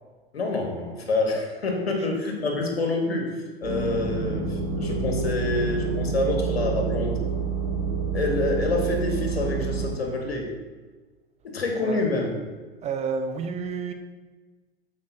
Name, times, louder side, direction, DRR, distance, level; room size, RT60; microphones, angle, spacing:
voice 1, 0.3-7.2 8.1-10.5 11.4-12.3, left 2 dB, 75° left, 2 dB, 1.7 m, -27 dB
sound 1, 3.6-9.9, right 4 dB, 60° right, 2.0 m, -28 dB
voice 2, 12.8-13.9, right 5 dB, 20° right, 6 dB, 0.7 m, -30 dB
13.5 x 5.3 x 2.8 m, 1.3 s
figure-of-eight pair, 90°, 31 cm